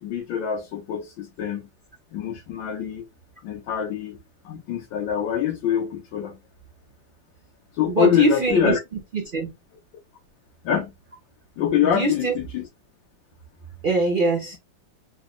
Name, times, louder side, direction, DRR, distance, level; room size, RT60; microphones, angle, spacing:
voice 1, 0.0-1.7 2.1-3.0 3.4-4.2 4.4-6.4 7.7-8.8 10.6-10.9 11.6-12.7, left 9 dB, 80° left, 1.5 m, -24 dB
voice 2, 7.9-8.8 9.1-9.5 11.9-12.3 13.8-14.6, right 4 dB, 75° right, 0.4 m, -23 dB
3.9 x 2.0 x 3.6 m
omnidirectional pair, 2.1 m